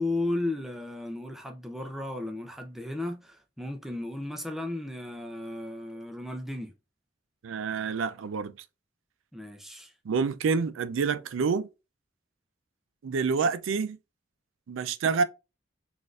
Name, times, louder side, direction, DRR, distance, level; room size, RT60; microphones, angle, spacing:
voice 1, 0.0-6.7 9.3-9.9, left 2 dB, ahead, 0.4 m, -34 dB
voice 2, 7.4-8.6 10.0-11.7 13.0-14.0 14.7-15.2, right 5 dB, 90° right, 0.4 m, -27 dB
4.1 x 2.5 x 2.4 m
head